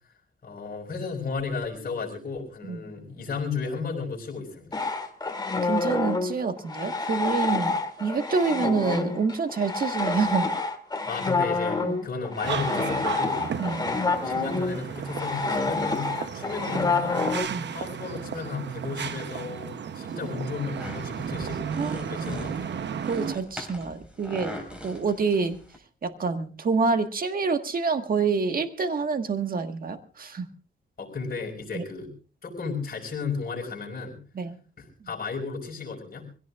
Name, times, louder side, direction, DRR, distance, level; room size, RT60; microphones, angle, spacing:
voice 1, 0.4-4.8 11.1-13.4 14.2-17.2 17.7-21.6 21.9-22.7 31.0-32.1 32.4-34.2 34.8-36.2, left 4 dB, 50° left, 1 dB, 5.4 m, -34 dB
sound 1, 4.7-17.4, left 3 dB, 20° left, 1.9 m, -28 dB
voice 2, 5.6-7.7 8.0-10.5 11.8-12.0 13.6-13.8 17.5-17.7 21.8-22.0 23.1-24.6 24.8-25.6 26.0-30.5 31.7-31.8 34.3-34.6, right 4 dB, 45° right, 7 dB, 1.5 m, -27 dB
sound 2, 12.4-23.4, right 7 dB, 65° right, 0.8 m, -34 dB
sound 3, 20.7-25.8, left 1 dB, 5° right, 4.4 m, -41 dB
25.5 x 17.0 x 2.4 m, 0.38 s
wide cardioid pair, 115°, 20 cm